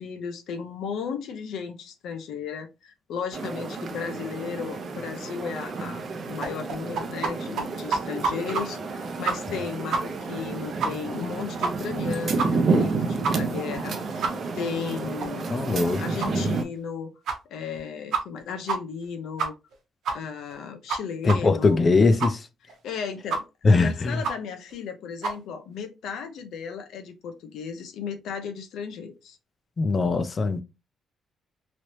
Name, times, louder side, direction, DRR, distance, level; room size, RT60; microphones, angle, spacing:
voice 1, 0.0-6.0 6.3-14.3 14.5-15.5 16.0-17.1 17.4-19.5 20.1-21.8 22.8-29.4, left 6 dB, 80° left, 0.6 m, -35 dB
sound 1, 3.3-16.6, right 4 dB, 50° right, 0.6 m, -30 dB
sound 2, 6.4-7.3 7.6-7.7 7.9-8.6 8.9-9.0 9.3-9.6 9.9-10.0 10.3-10.4 10.8-10.9 11.2-11.3 11.6-12.0 12.4-12.5 12.8-12.9 13.2-13.3 13.7-13.8 14.2-14.3 14.7-14.8 15.2-15.3 15.7-15.8 16.2-16.3 16.8-16.9 17.3-17.4 17.7-17.8 18.1-18.4 18.7-18.8 19.0-19.1 19.4-19.7 20.0-20.2 20.5-20.6 20.9-21.0 21.3-21.4 21.7-21.8 22.2-22.3 22.7-22.8 23.3-23.4 23.7-23.8 24.2-24.3 24.7-24.8 25.2-25.3, right 4 dB, 75° right, 0.9 m, -27 dB
voice 2, 15.5-16.0 16.3-16.4 21.2-22.4 23.6-24.2 29.8-30.6, left 3 dB, 35° left, 0.4 m, -21 dB
3.1 x 2.8 x 3.0 m
cardioid pair, 110°, 0 cm